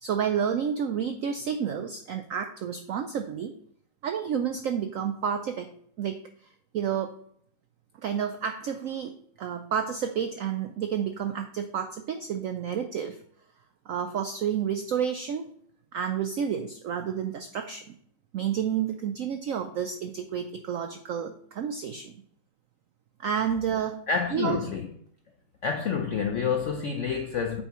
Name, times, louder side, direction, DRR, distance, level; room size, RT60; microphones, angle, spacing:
voice 1, 0.0-3.6 4.0-5.7 6.0-6.2 6.7-7.2 8.0-13.2 13.9-15.5 15.9-17.8 18.3-22.1 23.2-24.1 24.3-24.6, right 8 dB, 80° right, 0.7 m, -30 dB
voice 2, 24.1-24.9 25.6-27.6, left 6 dB, 75° left, 0.7 m, -28 dB
8.3 x 5.6 x 3.0 m
omnidirectional pair, 2.0 m